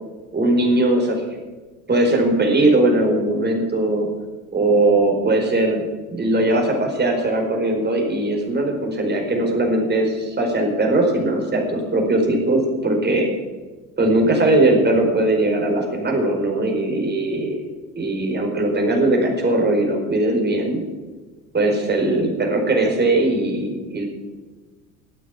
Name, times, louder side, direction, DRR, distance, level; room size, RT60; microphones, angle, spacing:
voice 1, 0.3-1.2 1.9-4.1 4.5-5.8 6.1-13.3 14.0-17.6 18.0-20.8 21.5-24.1, right 2 dB, 25° right, 1 dB, 4.7 m, -19 dB
12.5 x 9.0 x 8.5 m, 1.3 s
hypercardioid pair, 85°, 42 cm